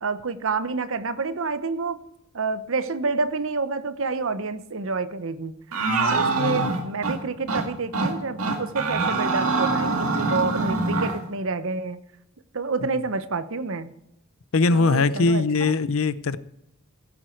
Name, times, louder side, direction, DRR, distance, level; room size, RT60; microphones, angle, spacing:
voice 1, 0.0-2.0 2.3-5.5 6.1-12.0 12.5-13.9 14.7-15.7, right 4 dB, 65° right, 13 dB, 0.9 m, -28 dB
sound 1, 5.7-7.2 7.5-7.6 7.9-8.1 8.4-11.2, right 3 dB, 90° right, 2.1 m, -24 dB
voice 2, 5.9-6.9 14.5-16.4, left 3 dB, 65° left, 16 dB, 0.6 m, -22 dB
16.5 x 8.9 x 4.5 m, 0.83 s
head